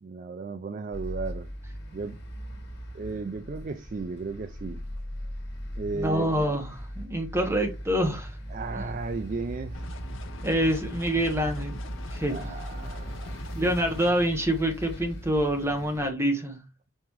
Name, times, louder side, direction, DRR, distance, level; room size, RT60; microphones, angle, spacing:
voice 1, 0.0-1.5 1.9-2.2 2.9-4.8 5.8-6.3 8.5-9.9 12.3-13.8, right 4 dB, 40° right, 0.4 m, -35 dB
sound 1, 0.9-16.1, equal, 50° left, 1.9 m, -39 dB
voice 2, 5.9-8.4 8.8-8.9 10.4-11.8 12.1-12.5 13.5-16.6, right 1 dB, 10° right, 0.9 m, -26 dB
sound 2, 9.7-14.1, left 3 dB, 70° left, 0.8 m, -43 dB
5.8 x 5.4 x 3.0 m
head